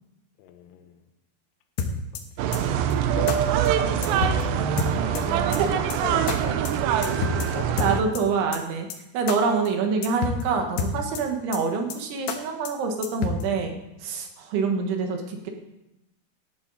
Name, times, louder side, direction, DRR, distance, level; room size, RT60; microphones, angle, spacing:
voice 1, 0.4-1.0 3.0-3.7 4.7-6.7 7.0-8.1, left 10 dB, 90° left, 8 dB, 3.8 m, -38 dB
sound 1, 1.8-2.2 2.5-2.6 2.9-3.0 3.3-3.4 3.7-3.8 4.0-4.4 4.8-5.2 5.5-5.6 5.9-6.0 6.3-6.4 6.7-6.8 7.0-7.5 7.8-8.2 8.5-8.6 8.9-9.0 9.3-9.4 9.7-9.8 10.0-10.4 10.8-11.2 11.5-11.6 11.9-12.0 12.3-12.4 12.7-12.8 13.0-13.4, left 6 dB, 75° left, 2.6 m, -28 dB
sound 2, 2.4-8.0, right 9 dB, 85° right, 2.4 m, -24 dB
voice 2, 7.8-8.9 9.1-15.5, right 5 dB, 70° right, 3 dB, 3.5 m, -26 dB
18.0 x 11.5 x 4.0 m, 0.91 s
omnidirectional pair, 6.0 m